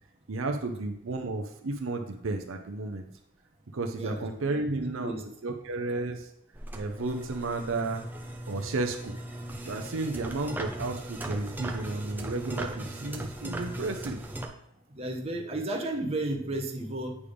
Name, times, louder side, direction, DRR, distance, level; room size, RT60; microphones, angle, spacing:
voice 1, 0.3-3.1 3.7-5.1 5.4-6.3 6.7-8.1 8.5-9.2 9.7-14.2, right 3 dB, 75° right, 4 dB, 0.6 m, -32 dB
voice 2, 3.9-4.3 4.6-5.2 14.9-17.2, right 1 dB, 30° right, 1 dB, 0.9 m, -33 dB
sound 1, 6.5-14.5, right 1 dB, 10° right, 0.6 m, -38 dB
8.4 x 3.4 x 5.0 m, 0.78 s
head